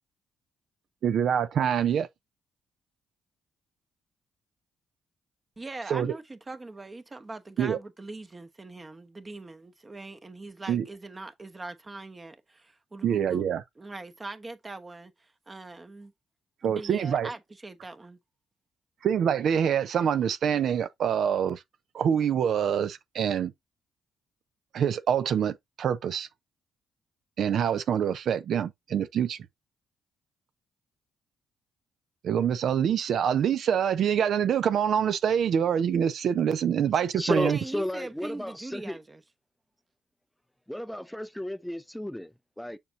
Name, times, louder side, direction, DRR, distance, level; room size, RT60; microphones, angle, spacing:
voice 1, 1.0-2.1 5.9-6.1 7.6-7.8 10.7-10.8 13.0-13.6 16.6-17.3 19.0-21.6 21.9-23.5 24.7-26.3 27.4-29.4 32.2-37.6, right 8 dB, 65° right, 0.6 m, -25 dB
voice 2, 5.6-13.4 13.8-16.1 16.6-18.2 36.3-36.6 37.5-39.2, right 2 dB, 25° right, 1.0 m, -42 dB
voice 3, 37.2-39.0 40.7-42.8, left 1 dB, 5° left, 0.5 m, -33 dB
6.8 x 5.3 x 2.7 m
cardioid pair, 90°, 0 cm